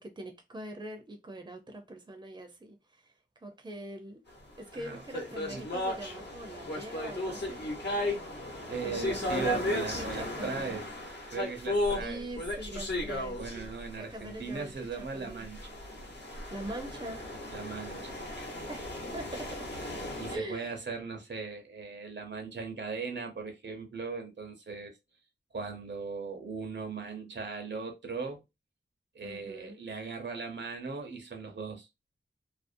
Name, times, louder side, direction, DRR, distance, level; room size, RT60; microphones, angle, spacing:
voice 1, 0.0-3.1 3.4-4.2 4.6-7.9 8.8-10.8 12.0-13.7 14.0-15.5 16.5-17.2 18.7-19.7 20.3-20.8 29.2-29.8, right 1 dB, 25° right, 0.6 m, -43 dB
sound 1, 4.7-14.4 15.3-20.4, left 1 dB, 60° left, 0.9 m, -35 dB
voice 2, 8.7-10.9 11.3-12.3 13.4-15.7 17.5-18.2 20.2-24.9 25.5-28.4 29.1-31.9, right 4 dB, 65° right, 0.8 m, -38 dB
2.5 x 2.0 x 2.5 m
wide cardioid pair, 60°, 20 cm